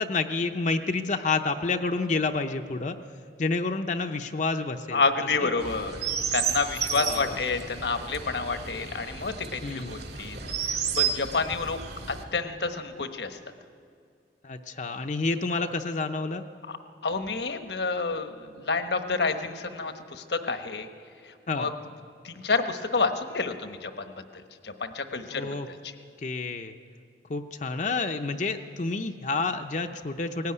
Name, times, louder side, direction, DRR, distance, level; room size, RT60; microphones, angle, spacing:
voice 1, 0.0-3.0 3.4-5.0 5.4-5.5 6.9-7.4 9.6-9.9 14.4-16.4 21.5-21.7 25.3-25.7 26.2-26.7 27.3-30.5, left 3 dB, 45° left, 6 dB, 0.7 m, -29 dB
voice 2, 4.9-6.0 6.3-10.4 10.9-11.8 12.1-13.4 16.7-16.8 17.0-20.9 21.6-21.7 22.2-23.9 24.6-25.9, left 4 dB, 70° left, 8 dB, 1.2 m, -29 dB
Chirp tweet, 5.6-12.2, right 7 dB, 65° right, 2.3 m, -32 dB
18.0 x 16.5 x 9.7 m, 2.3 s
head